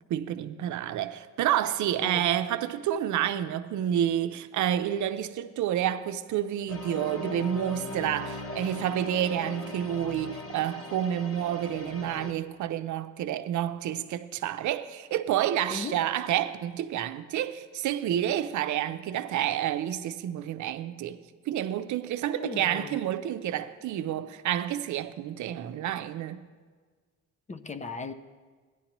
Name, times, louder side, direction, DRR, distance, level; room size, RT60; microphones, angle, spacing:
voice 1, 0.1-21.2 21.5-26.5, right 11 dB, 75° right, 0.6 m, -29 dB
sound 1, 6.7-12.3, left 2 dB, 50° left, 1.2 m, -39 dB
voice 2, 15.7-16.0 22.3-23.0 27.5-28.1, left 4 dB, 25° left, 0.6 m, -37 dB
16.0 x 10.5 x 3.0 m
cardioid pair, 90°, 30 cm